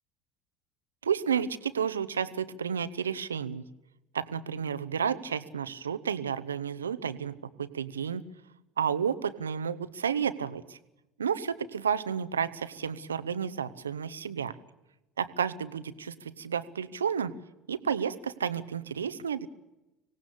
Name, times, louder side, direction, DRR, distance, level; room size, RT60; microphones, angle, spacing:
voice 1, 1.0-3.6 4.1-7.3 7.6-8.2 8.8-10.8 11.2-14.5 15.2-17.3 17.7-19.5, right 7 dB, 80° right, 13 dB, 1.0 m, -31 dB
25.0 x 18.0 x 8.6 m, 0.95 s
figure-of-eight pair, 65°, 0 cm